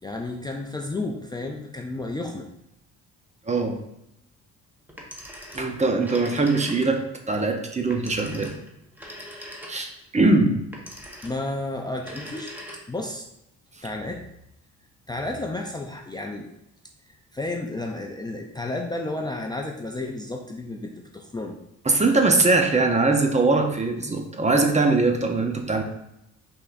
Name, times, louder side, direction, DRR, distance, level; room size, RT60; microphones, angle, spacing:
voice 1, 0.0-2.5 11.2-12.5 12.9-13.3 13.8-14.2 15.1-16.5 17.1-21.6, left 2 dB, 15° left, 1 dB, 0.4 m, -32 dB
voice 2, 3.5-3.8 5.5-8.5 9.7-10.6 21.9-25.8, right 3 dB, 25° right, 4 dB, 0.7 m, -21 dB
Telephone, 4.9-7.1 7.9-10.1 10.7-11.5 11.9-13.1, equal, 5° right, 1.0 m, -41 dB
5.4 x 3.7 x 2.5 m, 0.81 s
cardioid pair, 90°, 30 cm